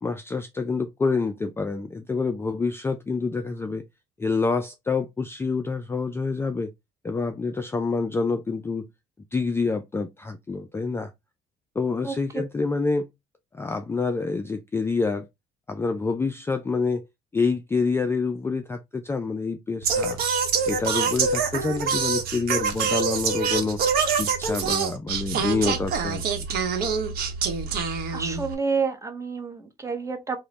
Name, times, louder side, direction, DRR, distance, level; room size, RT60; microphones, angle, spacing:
voice 1, 0.0-3.8 4.2-6.7 7.0-8.9 9.3-11.1 11.8-13.1 13.5-15.3 15.7-17.0 17.3-20.2 20.7-23.8 24.2-26.2, left 4 dB, 15° left, 0.3 m, -27 dB
Singing, 19.8-28.5, right 5 dB, 65° right, 0.9 m, -25 dB
voice 2, 27.8-30.4, right 5 dB, 20° right, 0.8 m, -29 dB
3.1 x 2.1 x 3.8 m
cardioid pair, 110°, 17 cm